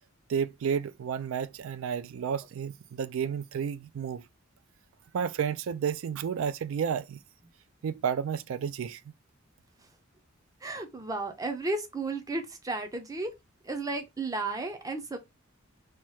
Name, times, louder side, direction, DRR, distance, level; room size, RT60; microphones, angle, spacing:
voice 1, 0.3-4.2 5.1-7.2 7.8-9.0, right 7 dB, 75° right, 0.3 m, -31 dB
voice 2, 10.6-13.3 13.6-15.2, right 2 dB, 15° right, 0.5 m, -33 dB
2.9 x 2.3 x 3.0 m
head